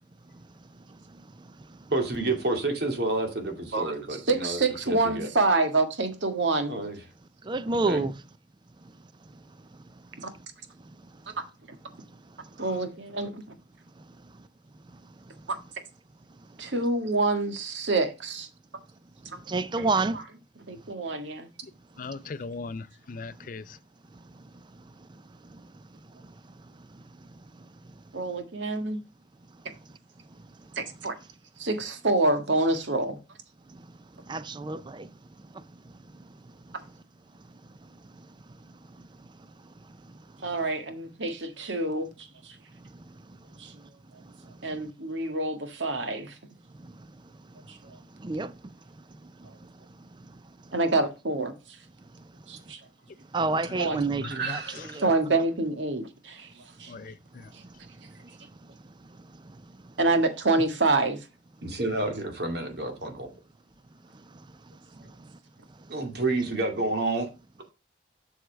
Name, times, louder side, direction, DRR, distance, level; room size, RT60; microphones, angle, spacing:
voice 1, 1.9-4.6 4.9-5.3 6.7-7.0 7.9-8.0 12.6-12.7 54.3-54.9 61.6-63.3 65.9-67.3, right 2 dB, 60° right, 2.2 m, -29 dB
voice 2, 4.3-6.8 12.6-13.4 16.6-18.5 19.3-19.4 19.8-19.9 20.7-21.5 28.1-29.0 30.8-31.1 31.6-33.2 40.4-42.1 42.4-42.5 43.6-43.7 44.6-46.3 47.7-47.8 50.7-51.5 52.5-52.8 53.7-54.0 55.0-56.5 56.8-56.9 60.0-61.2, right 2 dB, 85° right, 1.7 m, -27 dB
voice 3, 7.5-8.1 19.5-20.2 34.3-35.1 48.2-48.5 53.3-55.1, right 3 dB, 25° right, 0.4 m, -28 dB
voice 4, 22.0-23.8 54.2-54.9 56.9-57.5, left 4 dB, 45° left, 0.5 m, -39 dB
7.9 x 6.4 x 3.3 m
head